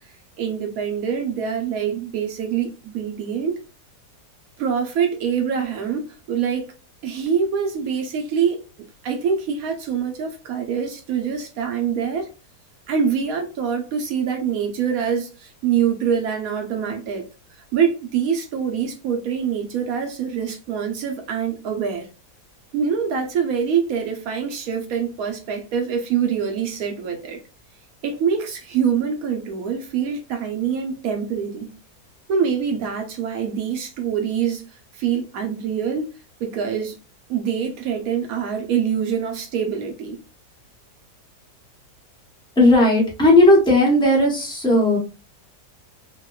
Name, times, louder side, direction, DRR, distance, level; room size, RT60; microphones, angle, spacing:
voice 1, 0.4-3.5 4.6-6.7 7.0-8.6 9.0-12.3 12.9-17.2 17.7-22.1 22.7-27.4 28.0-31.7 32.3-36.1 36.4-36.9 37.3-40.2, right 7 dB, 70° right, 0.9 m, -24 dB
voice 2, 42.6-45.0, left 1 dB, 5° left, 0.4 m, -15 dB
2.8 x 2.1 x 2.2 m
omnidirectional pair, 1.8 m